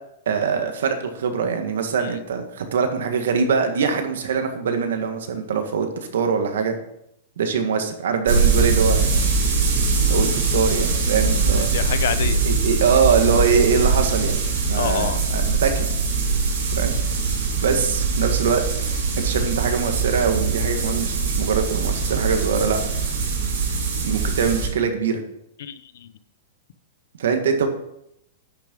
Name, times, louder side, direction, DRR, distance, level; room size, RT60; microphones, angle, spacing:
voice 1, 0.3-6.8 7.4-9.3 10.1-11.7 12.4-14.4 14.7-15.9 16.7-17.0 17.6-18.6 19.2-22.8 24.0-25.2 27.2-27.7, right 6 dB, 80° right, 6 dB, 1.8 m, -23 dB
sound 1, 8.3-24.7, right 4 dB, 55° right, 3.8 m, -22 dB
voice 2, 11.5-12.4 14.7-15.2 25.6-26.1, left 9 dB, 60° left, 13 dB, 0.7 m, -27 dB
10.0 x 6.4 x 5.4 m, 0.78 s
supercardioid pair, 175°, 0 cm